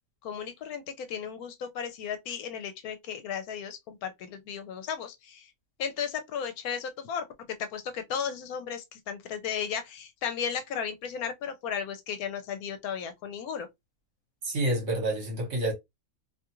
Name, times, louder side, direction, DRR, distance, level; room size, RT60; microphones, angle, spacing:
voice 1, 0.2-5.5 5.8-7.2 7.6-13.7, left 7 dB, 75° left, 1.0 m, -35 dB
voice 2, 14.4-15.7, right 1 dB, 55° right, 1.3 m, -28 dB
2.7 x 2.3 x 2.9 m
omnidirectional pair, 1.6 m